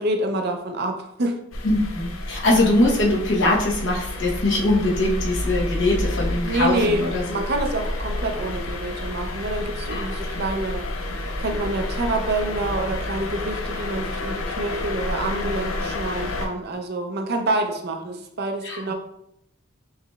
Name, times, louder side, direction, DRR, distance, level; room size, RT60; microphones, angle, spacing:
voice 1, 0.0-1.4 6.4-10.8 11.4-18.9, right 1 dB, 50° right, 4 dB, 0.5 m, -27 dB
sound 1, 1.5-16.5, left 1 dB, 75° left, 0.5 m, -30 dB
voice 2, 1.6-7.4 9.9-10.1 18.6-18.8, left 1 dB, 60° left, -2 dB, 0.9 m, -22 dB
4.8 x 3.1 x 2.3 m, 0.76 s
head